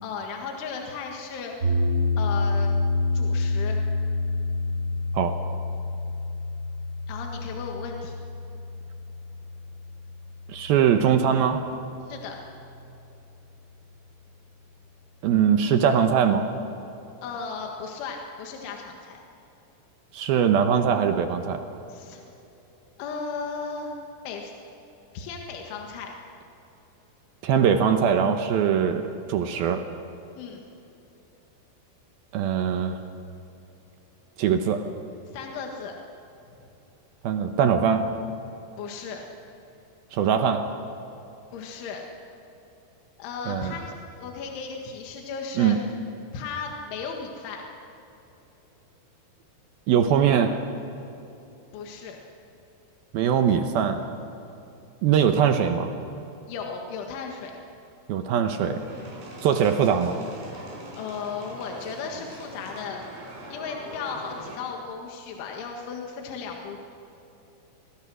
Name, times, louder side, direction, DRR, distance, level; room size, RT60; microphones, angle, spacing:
voice 1, 0.0-1.5 2.2-2.8 3.1-3.8 7.1-8.2 12.1-12.4 17.2-19.2 21.9-22.2 23.0-23.9 24.3-24.5 25.1-26.1 30.4-30.6 35.3-35.9 38.8-39.2 41.5-42.0 43.2-45.8 46.3-47.6 51.7-52.2 56.5-57.5 61.0-63.0 63.5-66.8, left 5 dB, 80° left, 1 dB, 4.1 m, -35 dB
sound 1, 1.6-11.8, left 2 dB, 25° right, 4.1 m, -28 dB
voice 2, 10.5-11.6 15.2-16.5 20.1-21.6 27.4-29.8 32.3-33.0 34.4-34.9 37.2-38.1 40.1-40.7 43.5-43.7 45.6-45.8 49.9-50.6 53.1-54.0 55.0-55.9 58.1-58.8 59.4-60.2, right 8 dB, 75° right, 6 dB, 2.3 m, -22 dB
sound 2, 58.7-64.6, right 1 dB, 60° right, 6.0 m, -42 dB
27.0 x 21.0 x 6.3 m, 2.9 s
omnidirectional pair, 5.5 m